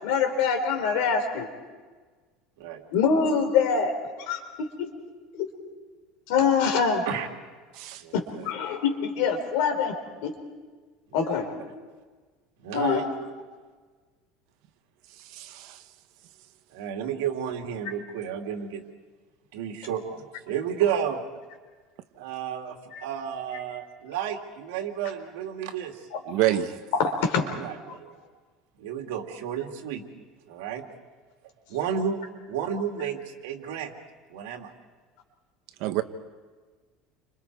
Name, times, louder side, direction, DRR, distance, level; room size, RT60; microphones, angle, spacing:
voice 1, 0.0-1.5 2.9-3.9 4.3-4.9 5.3-5.4 6.3-7.0 8.1-9.9 10.2-10.3 11.1-11.5 12.7-13.1 22.9-23.0 26.1-26.2 27.0-27.4, left 6 dB, 65° left, 4 dB, 4.4 m, -24 dB
voice 2, 8.0-8.5 11.2-11.4 12.6-13.0 16.7-18.8 19.5-21.2 22.2-26.0 27.4-28.2 28.8-30.0 30.5-30.8 31.7-33.9 34.3-34.7, right 8 dB, 85° right, 3 dB, 2.5 m, -32 dB
voice 3, 15.3-15.8 26.3-26.7 35.8-36.0, right 14 dB, 55° right, 9 dB, 1.3 m, -27 dB
29.5 x 26.5 x 4.8 m, 1.4 s
cardioid pair, 170°, 0 cm